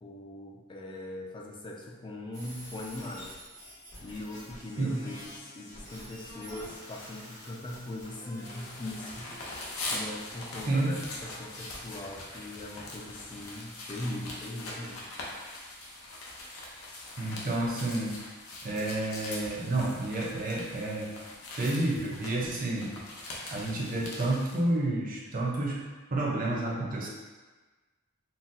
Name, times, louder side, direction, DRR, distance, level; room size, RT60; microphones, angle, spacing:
voice 1, 0.0-3.3 4.0-9.4 9.9-15.0, left 1 dB, 25° left, -1 dB, 0.3 m, -40 dB
sound 1, 2.3-9.8, left 1 dB, 55° left, 1.1 m, -48 dB
sound 2, 8.4-24.6, left 2 dB, 85° left, 0.6 m, -42 dB
voice 2, 10.7-11.0 17.2-18.2 18.6-21.1 21.5-22.9 23.5-27.1, right 2 dB, 40° right, -3 dB, 0.5 m, -30 dB
3.9 x 2.0 x 2.5 m, 1.3 s
head